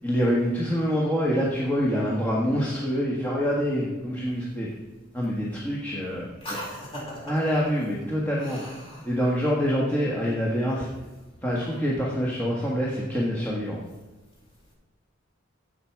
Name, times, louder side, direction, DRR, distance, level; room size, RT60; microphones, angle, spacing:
voice 1, 0.0-4.7 5.1-6.3 7.2-8.7 9.0-10.9 11.4-13.8, equal, 10° left, -5 dB, 1.5 m, -26 dB
voice 2, 6.4-7.4 8.4-9.1, equal, 30° left, -4 dB, 4.1 m, -37 dB
16.0 x 6.0 x 4.6 m, 1.2 s
head